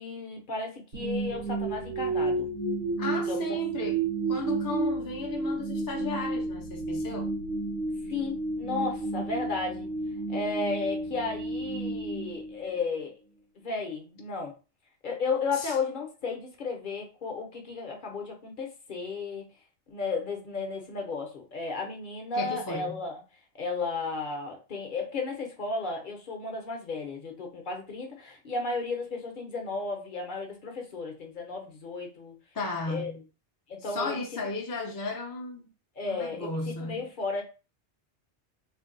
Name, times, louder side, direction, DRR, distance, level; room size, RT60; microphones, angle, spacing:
voice 1, 0.0-2.5 3.3-3.6 8.1-9.9 10.3-13.1 13.6-14.5 15.0-19.4 19.9-23.2 23.5-32.3 32.9-33.1 33.7-34.4 36.0-36.5 36.8-37.4, left 4 dB, 50° left, 0.8 m, -34 dB
sound 1, 0.9-13.1, right 3 dB, 85° right, 1.0 m, -31 dB
voice 2, 3.0-4.0 4.3-7.3 15.5-15.7 22.3-23.0 32.5-33.2 33.8-35.7 36.1-37.0, left 3 dB, 30° left, 0.4 m, -35 dB
2.6 x 2.1 x 3.7 m
omnidirectional pair, 1.1 m